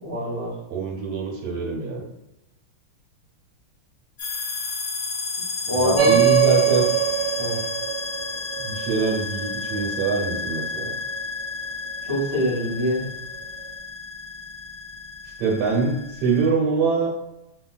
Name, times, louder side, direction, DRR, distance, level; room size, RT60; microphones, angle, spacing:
voice 1, 0.0-0.5 5.6-6.2 7.4-7.6 12.0-13.1, equal, 25° right, -7 dB, 0.7 m, -25 dB
voice 2, 0.7-2.0 5.8-6.9 8.6-10.9 15.4-17.1, right 4 dB, 85° right, -2 dB, 1.7 m, -24 dB
sound 1, 4.2-16.5, left 4 dB, 70° left, 1.1 m, -32 dB
sound 2, 6.0-10.9, right 11 dB, 70° right, 1.5 m, -23 dB
3.5 x 2.3 x 2.3 m, 0.89 s
omnidirectional pair, 2.4 m